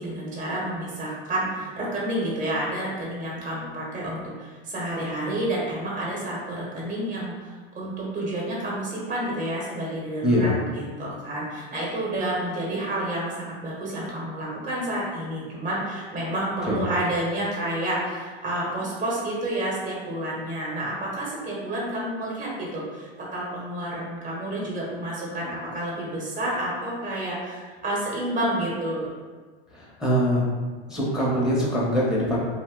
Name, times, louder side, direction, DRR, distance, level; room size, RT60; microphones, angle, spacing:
voice 1, 0.0-29.1, right 1 dB, 25° right, -5 dB, 1.0 m, -29 dB
voice 2, 10.2-10.6 16.7-16.8 29.7-30.4 30.9-32.4, equal, ahead, -6 dB, 0.8 m, -23 dB
2.6 x 2.1 x 3.7 m, 1.4 s
hypercardioid pair, 105°, 29 cm